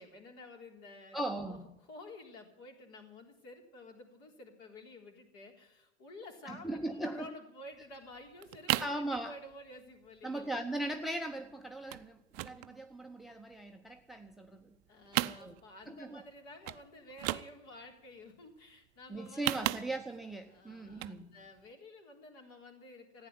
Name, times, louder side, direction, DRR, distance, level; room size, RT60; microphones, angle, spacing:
voice 1, 0.0-1.6 1.9-10.5 14.9-19.8 20.5-23.3, left 2 dB, 45° left, 3 dB, 3.9 m, -51 dB
voice 2, 1.1-1.6 6.4-7.3 8.8-9.4 10.2-14.7 15.2-15.5 15.9-16.2 19.1-21.4, right 1 dB, ahead, 7 dB, 0.8 m, -39 dB
sound 1, 7.8-7.9 8.2-9.0 9.4-9.7 10.1-10.2 10.4-10.6 10.9-11.4 11.9-12.1 12.3-13.6 14.0-14.8 15.0-15.9 16.2-16.3 16.6-16.8 17.1-17.9 19.1-20.2 20.9-21.2 21.6-21.7, right 18 dB, 35° right, 0.5 m, -35 dB
15.0 x 9.7 x 9.6 m, 0.86 s
figure-of-eight pair, 95°, 34 cm